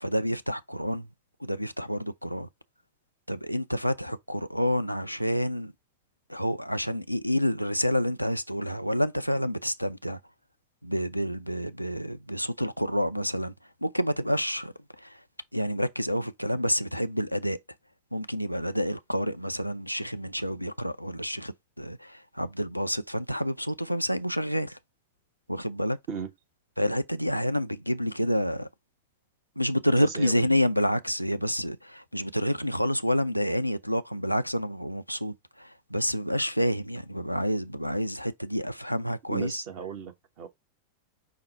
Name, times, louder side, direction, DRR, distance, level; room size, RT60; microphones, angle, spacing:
voice 1, 0.0-1.1 1.4-2.5 3.3-5.7 6.3-10.2 10.8-13.5 13.8-15.2 15.5-17.6 18.1-24.8 25.5-26.0 26.8-28.7 29.6-39.6, equal, 90° left, 0.4 m, -28 dB
voice 2, 30.0-30.5 39.3-40.5, right 7 dB, 45° right, 1.1 m, -36 dB
5.7 x 2.1 x 3.9 m
figure-of-eight pair, 90°, 0 cm